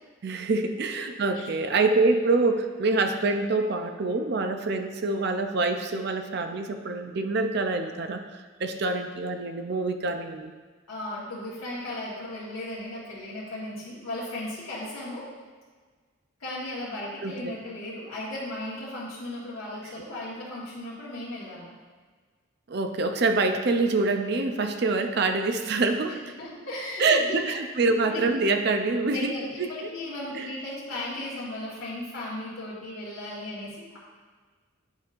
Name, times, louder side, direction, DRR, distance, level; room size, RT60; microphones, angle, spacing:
voice 1, 0.2-8.2 8.6-10.5 17.2-17.6 22.7-26.2 27.0-29.3 29.6-29.9 30.3-30.5, right 3 dB, 50° right, 6 dB, 0.5 m, -25 dB
voice 2, 10.9-15.2 16.4-21.8 26.4-27.4 28.1-28.5 29.1-34.0, left 1 dB, 85° left, -8 dB, 1.5 m, -36 dB
9.1 x 5.3 x 2.5 m, 1.5 s
head